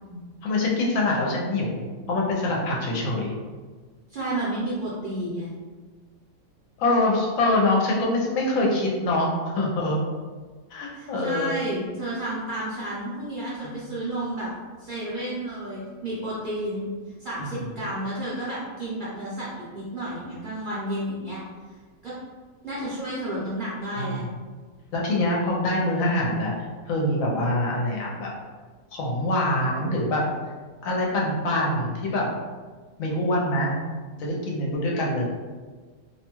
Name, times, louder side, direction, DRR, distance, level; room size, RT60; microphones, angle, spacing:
voice 1, 0.1-3.4 6.8-9.3 9.5-10.0 10.7-11.6 17.4-17.6 23.9-24.1 24.9-26.5 26.9-28.3 28.9-30.2 30.8-32.3 33.0-33.7 34.2-35.3, left 1 dB, 75° left, -2 dB, 1.0 m, -24 dB
voice 2, 4.1-5.5 10.9-14.5 14.8-16.9 17.2-21.4 22.0-22.1 22.6-24.2, right 1 dB, 50° right, -9 dB, 0.7 m, -31 dB
2.6 x 2.2 x 2.9 m, 1.4 s
omnidirectional pair, 1.5 m